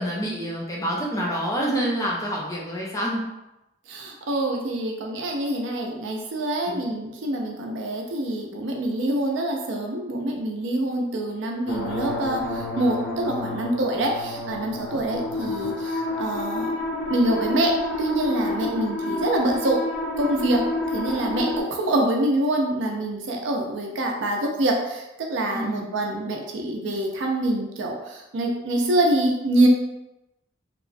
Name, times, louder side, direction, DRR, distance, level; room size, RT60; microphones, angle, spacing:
voice 1, 0.0-3.2 6.7-6.8 14.9-15.0 25.5-25.9, equal, 15° left, -4 dB, 0.5 m, -27 dB
voice 2, 3.9-16.7 17.1-17.7 18.0-19.8 20.2-20.6 20.9-29.7, right 1 dB, 85° right, 1 dB, 0.5 m, -25 dB
sound 1, 11.7-21.6, left 2 dB, 75° left, 0.5 m, -29 dB
2.9 x 2.0 x 2.5 m, 0.94 s
head